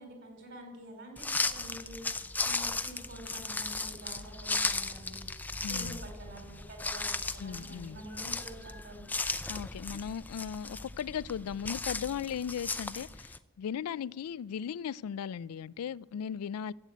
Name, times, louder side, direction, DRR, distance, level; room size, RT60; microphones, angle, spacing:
voice 1, 0.0-9.0, right 1 dB, 55° right, 3.5 m, -48 dB
sound 1, 1.2-13.4, left 3 dB, 10° left, 0.3 m, -36 dB
voice 2, 5.6-6.0 7.4-8.0 9.5-16.7, left 8 dB, 85° left, 0.3 m, -37 dB
13.0 x 8.0 x 8.4 m
head